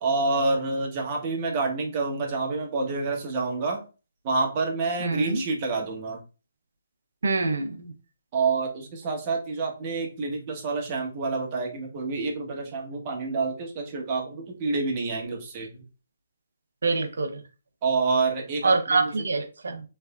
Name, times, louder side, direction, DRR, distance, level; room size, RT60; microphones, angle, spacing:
voice 1, 0.0-3.8 4.2-6.2 8.3-15.8 17.8-19.1, right 3 dB, 35° right, 1.1 m, -28 dB
voice 2, 5.0-5.4 7.2-7.9 16.8-17.4 18.6-19.8, right 3 dB, 75° right, 0.7 m, -25 dB
3.3 x 3.2 x 2.3 m
hypercardioid pair, 150°, 0 cm